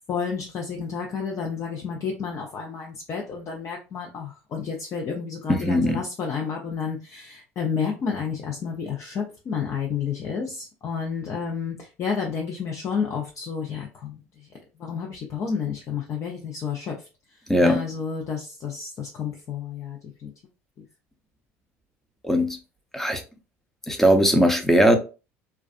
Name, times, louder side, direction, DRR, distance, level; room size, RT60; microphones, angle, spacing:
voice 1, 0.1-14.5 14.8-17.1 17.6-20.3, left 6 dB, 45° left, 0.6 m, -30 dB
voice 2, 5.5-6.0 17.5-17.8 22.2-22.6 22.9-23.2 23.9-25.0, equal, 5° left, 0.6 m, -19 dB
2.4 x 2.3 x 2.4 m
hypercardioid pair, 75°, 7 cm